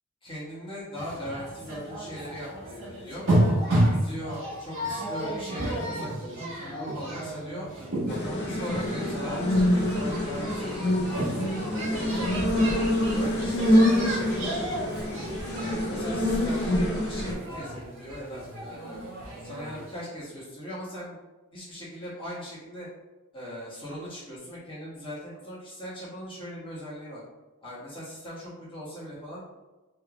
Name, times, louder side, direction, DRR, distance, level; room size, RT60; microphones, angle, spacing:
voice 1, 0.2-3.2 3.8-7.7 8.1-12.6 13.1-15.0 15.6-19.1 19.4-21.2 21.5-22.9 23.3-27.2 27.6-29.4, equal, 25° left, -9 dB, 1.4 m, -39 dB
sound 1, 1.0-19.9, right 1 dB, 65° right, 1.4 m, -32 dB
sound 2, 8.1-17.3, left 1 dB, 50° left, 0.6 m, -26 dB
3.4 x 3.1 x 2.3 m, 1.1 s
head